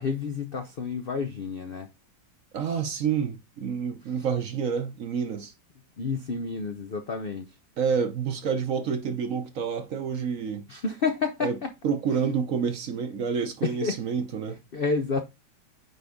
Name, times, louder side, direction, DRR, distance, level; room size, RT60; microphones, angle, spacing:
voice 1, 0.0-1.9 6.0-7.5 10.7-11.7 13.6-14.0 14.7-15.2, left 4 dB, 60° left, 0.5 m, -29 dB
voice 2, 2.5-5.5 7.8-10.6 11.4-11.6 11.8-14.6, right 6 dB, 55° right, 1.1 m, -28 dB
9.3 x 3.9 x 3.6 m
omnidirectional pair, 1.9 m